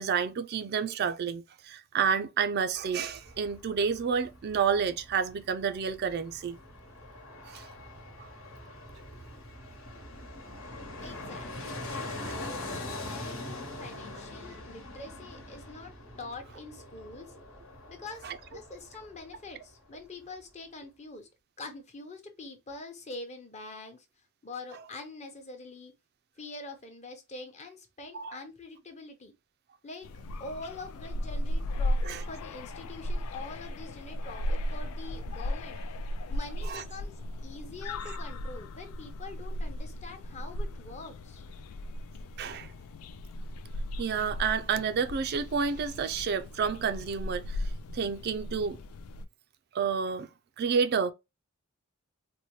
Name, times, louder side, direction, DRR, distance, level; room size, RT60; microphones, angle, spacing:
voice 1, 0.0-6.6 7.5-7.7 12.2-12.3 28.1-28.4 32.0-32.2 36.7-36.8 42.4-42.7 44.0-47.6 47.9-48.8 49.7-50.3 50.6-51.1, right 6 dB, 50° right, 0.4 m, -29 dB
Fixed-wing aircraft airplane, 2.8-19.7 20.0-20.1, left 2 dB, 70° left, 1.2 m, -43 dB
voice 2, 11.0-17.4 17.9-21.3 21.6-24.1 24.4-25.9 26.4-29.3 29.8-30.1 30.4-35.8 36.3-41.4, left 3 dB, 30° left, 0.8 m, -45 dB
sound 1, 30.0-49.2, left 1 dB, 85° left, 0.4 m, -36 dB
4.2 x 2.1 x 3.0 m
head